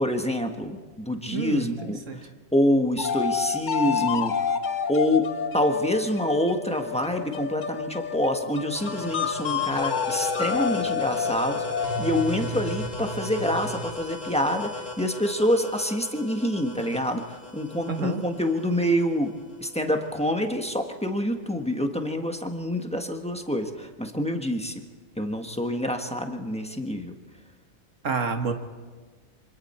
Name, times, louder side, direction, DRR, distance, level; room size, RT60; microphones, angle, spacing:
voice 1, 0.0-4.5 4.9-19.3 19.6-24.8 25.2-27.1, left 1 dB, 5° left, 4 dB, 1.3 m, -27 dB
voice 2, 1.3-2.2 17.9-18.2 28.0-28.5, right 5 dB, 60° right, 5 dB, 1.8 m, -29 dB
sound 1, 3.0-12.4, left 6 dB, 45° left, 0.7 m, -29 dB
sound 2, 8.8-20.1, left 2 dB, 65° left, 2.8 m, -35 dB
27.0 x 25.5 x 4.4 m, 1.4 s
omnidirectional pair, 1.5 m